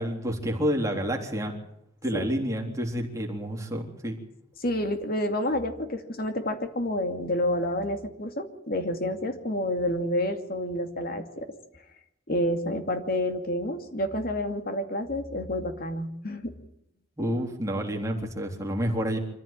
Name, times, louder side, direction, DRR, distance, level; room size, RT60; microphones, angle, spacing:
voice 1, 0.0-1.6 2.0-4.2 17.2-19.2, equal, 15° right, 1 dB, 3.6 m, -29 dB
voice 2, 4.6-11.5 12.3-16.5, left 1 dB, 55° left, 7 dB, 2.6 m, -29 dB
25.5 x 14.5 x 9.1 m, 0.81 s
head